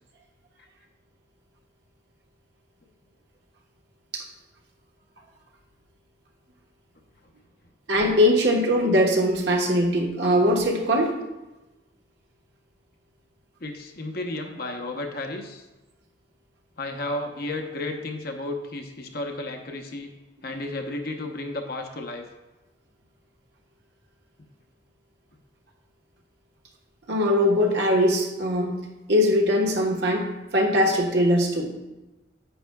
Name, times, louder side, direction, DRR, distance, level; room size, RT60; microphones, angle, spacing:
voice 1, 7.9-11.1 27.1-28.7 29.1-30.2 30.5-31.7, equal, 60° right, 0 dB, 1.2 m, -21 dB
voice 2, 13.6-15.6 16.8-20.1 20.4-22.2, left 2 dB, 50° left, 3 dB, 0.9 m, -33 dB
9.9 x 8.5 x 2.3 m, 1.1 s
head